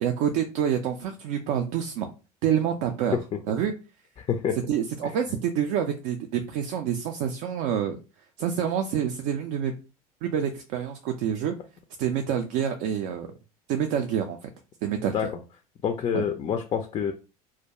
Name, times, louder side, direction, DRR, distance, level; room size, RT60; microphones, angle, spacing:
voice 1, 0.0-2.1 2.4-3.2 3.5-3.7 4.7-8.0 8.4-9.7 10.2-11.5 12.0-13.3 13.7-14.4 14.8-15.2 16.1-16.2, right 9 dB, 50° right, 5 dB, 0.4 m, -27 dB
voice 2, 4.2-4.6 5.0-5.1 15.1-15.3 15.8-17.1, left 7 dB, 25° left, 6 dB, 0.3 m, -27 dB
2.3 x 2.1 x 2.8 m, 0.32 s
figure-of-eight pair, 70°, 19 cm